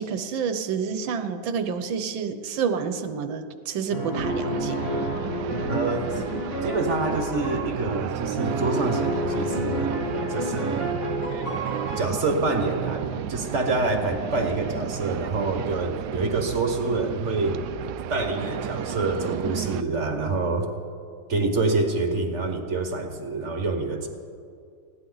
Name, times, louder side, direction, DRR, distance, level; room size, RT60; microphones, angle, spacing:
voice 1, 0.0-4.8, right 6 dB, 90° right, 9 dB, 1.7 m, -29 dB
sound 1, 3.9-7.6 8.3-12.0, equal, 35° left, 3.8 m, -29 dB
sound 2, 4.1-19.8, right 10 dB, 70° right, 1.1 m, -33 dB
voice 2, 5.7-6.2 6.6-11.0 12.0-17.6 18.1-20.7 21.3-24.1, right 3 dB, 40° right, 4 dB, 1.5 m, -27 dB
20.0 x 16.5 x 4.0 m, 2.4 s
omnidirectional pair, 2.1 m